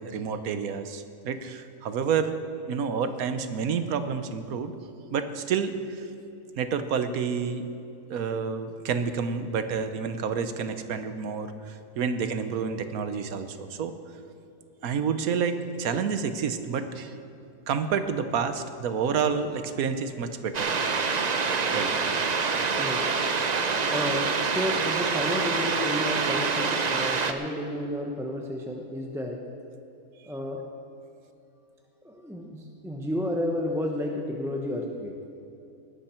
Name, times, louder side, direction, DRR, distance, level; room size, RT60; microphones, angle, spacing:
voice 1, 0.0-2.4 2.7-4.7 5.1-6.1 6.6-7.7 8.1-13.9 14.8-17.1 17.7-20.7 21.7-21.9, right 6 dB, 80° right, 10 dB, 1.3 m, -29 dB
sound 1, 20.5-27.3, right 5 dB, 40° right, 0.6 m, -26 dB
voice 2, 22.8-23.2 23.9-29.4 30.2-30.6 32.0-35.2, left 1 dB, ahead, 1 dB, 0.7 m, -31 dB
19.5 x 12.0 x 4.5 m, 2.7 s
omnidirectional pair, 1.5 m